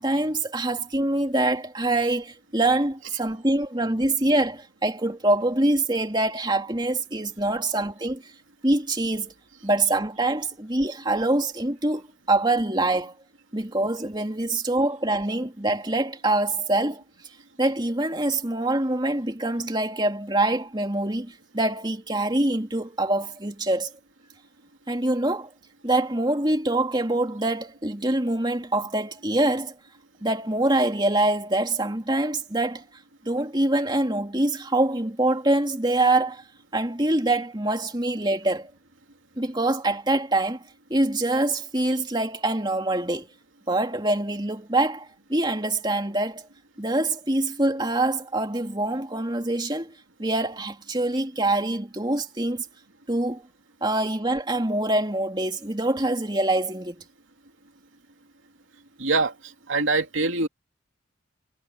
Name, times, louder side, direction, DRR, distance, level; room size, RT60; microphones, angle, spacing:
voice 1, 0.0-8.2 8.6-9.3 9.6-13.1 13.5-17.0 17.6-23.9 24.9-25.5 25.8-29.7 30.2-32.8 33.2-36.4 36.7-38.7 39.4-40.6 40.9-43.3 43.7-46.5 46.8-49.9 50.2-52.6 53.1-53.4 53.8-57.0, right 2 dB, 20° right, 2.9 m, -25 dB
voice 2, 59.0-60.5, right 3 dB, 75° right, 2.9 m, -24 dB
head